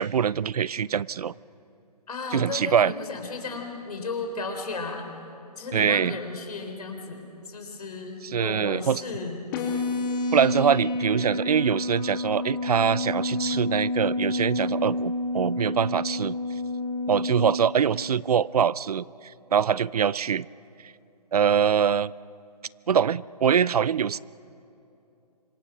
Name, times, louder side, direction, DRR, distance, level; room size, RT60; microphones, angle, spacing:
voice 1, 0.0-1.3 2.3-2.9 5.7-6.1 8.2-9.0 10.3-16.4 17.1-20.5 21.3-22.1 22.9-24.2, right 7 dB, 65° right, 23 dB, 0.4 m, -24 dB
voice 2, 2.1-5.1 5.6-9.5, left 3 dB, 65° left, 5 dB, 4.0 m, -34 dB
sound 1, 9.5-17.5, left 2 dB, 30° left, 2.7 m, -29 dB
26.0 x 23.0 x 6.0 m, 2.8 s
figure-of-eight pair, 140°, 21 cm